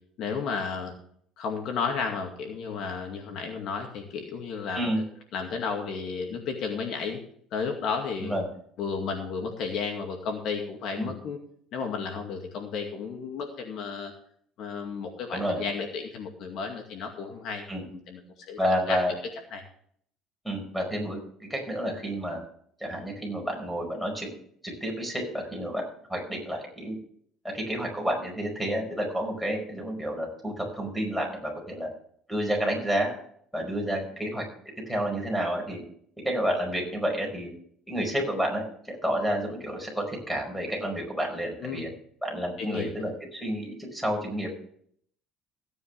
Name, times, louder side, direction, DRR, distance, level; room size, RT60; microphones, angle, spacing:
voice 1, 0.2-0.9 1.4-5.0 5.3-7.2 7.5-8.3 8.8-11.4 11.7-14.1 14.6-17.6 17.9-18.2 18.5-18.6 18.9-19.0 19.5-19.6 41.6-41.9 42.6-42.9, left 5 dB, 55° left, 3 dB, 2.2 m, -33 dB
voice 2, 18.6-19.1 20.4-22.4 22.8-24.3 24.6-25.8 26.1-27.0 27.5-31.9 32.3-33.1 33.5-34.4 34.9-35.8 36.2-37.5 37.9-41.9 42.2-44.5, equal, ahead, 1 dB, 5.1 m, -30 dB
16.5 x 9.4 x 3.4 m, 0.62 s
cardioid pair, 145°, 0 cm